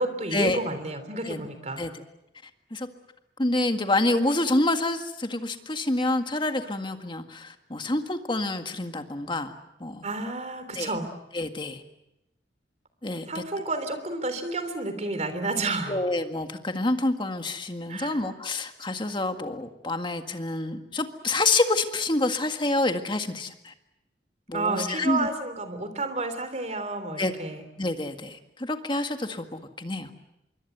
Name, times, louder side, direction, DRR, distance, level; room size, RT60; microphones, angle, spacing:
voice 1, 0.0-1.9 10.0-11.1 13.3-16.0 17.9-18.2 24.5-27.6, right 2 dB, 40° right, 10 dB, 3.3 m, -30 dB
voice 2, 3.4-9.5 9.8-10.1 10.7-10.9 11.3-11.8 13.0-13.4 15.9-23.7 24.5-25.3 27.2-27.3 27.8-30.1, left 2 dB, 30° left, 6 dB, 1.8 m, -27 dB
26.0 x 23.5 x 8.1 m, 0.89 s
head